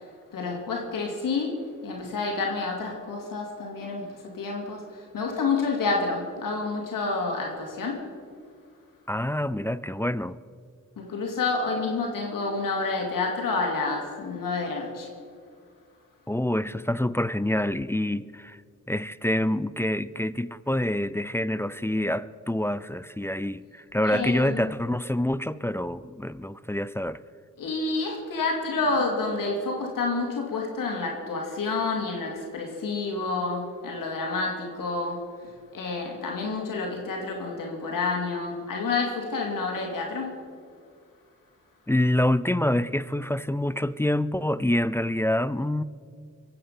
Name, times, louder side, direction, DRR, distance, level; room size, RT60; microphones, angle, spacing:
voice 1, 0.3-1.6 1.8-8.0 11.0-15.1 24.1-24.6 27.6-35.2 35.7-40.3, left 3 dB, 85° left, 2.6 m, -29 dB
voice 2, 9.1-10.4 16.3-18.6 18.9-27.2 41.9-45.8, left 1 dB, 10° left, 0.4 m, -26 dB
23.0 x 8.6 x 5.6 m
cardioid pair, 65°, 33 cm